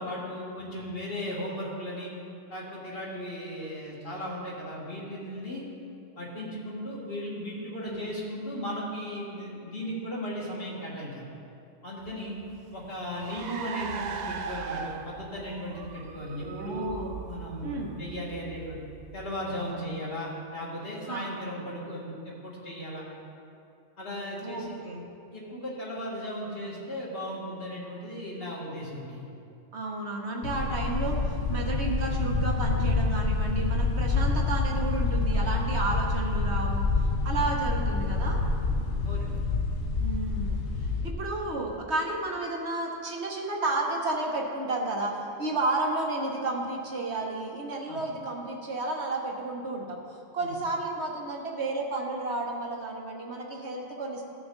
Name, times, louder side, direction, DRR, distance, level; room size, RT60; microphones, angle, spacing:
voice 1, 0.0-2.1 2.5-5.6 6.2-11.3 11.8-12.4 12.7-16.9 17.2-18.8 19.1-23.0 24.0-24.8 25.3-29.3 39.0-39.4 41.2-41.3 47.9-48.0 50.4-50.5, equal, 50° left, -6 dB, 2.2 m, -36 dB
Car, 12.0-19.8, right 5 dB, 75° right, 0.4 m, -40 dB
voice 2, 16.4-17.1 17.6-18.0 21.1-21.3 24.4-25.0 29.7-36.9 37.2-38.4 40.0-40.6 41.0-50.0 50.3-54.2, right 2 dB, 60° right, 0 dB, 1.3 m, -32 dB
sound 1, 30.4-41.1, left 3 dB, 70° left, 1.0 m, -27 dB
15.5 x 6.2 x 3.9 m, 2.6 s
omnidirectional pair, 1.3 m